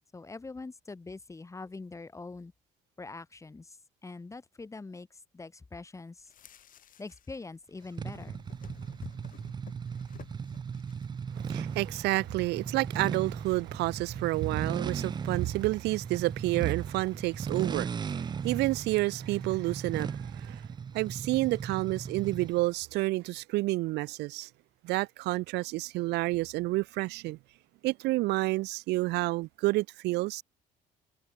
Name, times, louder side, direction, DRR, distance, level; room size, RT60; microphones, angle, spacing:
voice 1, 0.1-2.5 3.0-3.8 4.0-6.3 7.0-8.4, left 3 dB, 20° left, 2.0 m, -44 dB
sound 1, 6.2-7.4 7.6-11.2, left 10 dB, 55° left, 6.0 m, -52 dB
sound 2, 8.0-22.7, right 6 dB, 25° right, 0.5 m, -37 dB
voice 2, 11.4-20.6 20.9-24.5 24.8-27.4 27.8-30.4, right 20 dB, 80° right, 0.6 m, -30 dB
cardioid pair, 110°, 17 cm